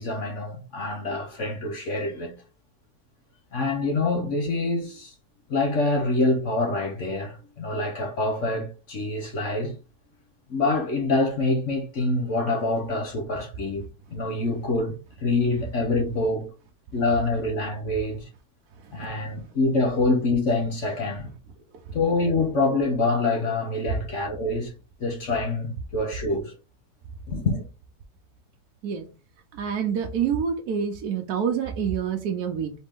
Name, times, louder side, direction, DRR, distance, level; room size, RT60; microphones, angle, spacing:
voice 1, 0.0-2.3 3.5-5.1 5.5-9.7 10.5-13.8 14.1-16.5 16.9-18.3 18.9-21.3 21.9-24.7 25.0-26.5 27.3-27.6, left 2 dB, 50° left, 1.2 m, -26 dB
voice 2, 29.5-32.7, right 7 dB, 65° right, 1.2 m, -27 dB
4.1 x 3.2 x 3.6 m
omnidirectional pair, 1.9 m